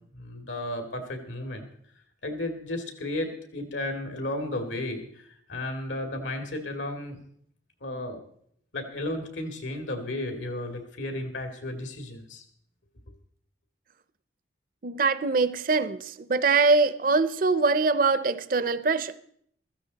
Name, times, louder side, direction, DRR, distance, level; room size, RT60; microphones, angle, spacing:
voice 1, 0.1-1.6 2.2-7.2 7.8-8.2 8.7-12.4, left 1 dB, 80° left, 2.3 m, -33 dB
voice 2, 14.8-19.1, right 4 dB, 45° right, 0.6 m, -23 dB
15.5 x 14.0 x 4.0 m
head